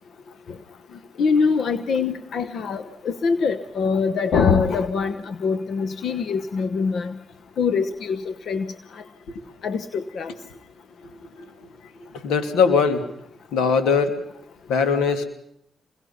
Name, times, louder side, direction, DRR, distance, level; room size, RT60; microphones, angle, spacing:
voice 1, 1.2-7.2 7.6-8.7 9.6-10.3, left 5 dB, 65° left, 12 dB, 1.1 m, -23 dB
voice 2, 12.2-13.0 13.5-14.1 14.7-15.2, left 5 dB, 85° left, 8 dB, 2.7 m, -20 dB
28.0 x 22.5 x 5.8 m, 0.73 s
supercardioid pair, 60°, 0 cm